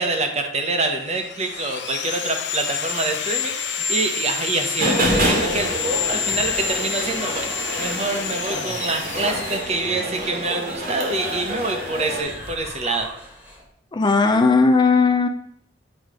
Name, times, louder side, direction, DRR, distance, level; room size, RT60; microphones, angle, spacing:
voice 1, 0.0-13.1, right 2 dB, 35° right, 4 dB, 0.9 m, -26 dB
Sawing, 0.9-10.7, left 7 dB, 70° left, 0.7 m, -29 dB
sound 1, 4.8-12.2, right 1 dB, 50° right, 1.4 m, -27 dB
sound 2, 5.0-13.7, equal, 10° right, 1.4 m, -37 dB
voice 2, 13.9-15.3, left 4 dB, 25° left, 5 dB, 0.4 m, -16 dB
8.3 x 3.2 x 5.0 m, 0.70 s
head